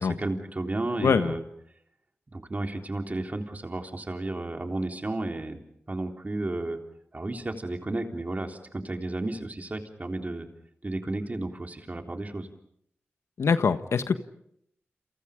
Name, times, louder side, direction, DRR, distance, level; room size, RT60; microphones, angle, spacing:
voice 1, 0.0-1.4 2.3-5.6 5.9-6.8 7.1-10.5 10.8-12.5, right 2 dB, 35° right, 4 dB, 3.6 m, -32 dB
voice 2, 1.0-1.4 13.4-14.2, left 5 dB, 90° left, 10 dB, 1.4 m, -23 dB
29.0 x 28.0 x 5.2 m, 0.70 s
wide cardioid pair, 70°, 5 cm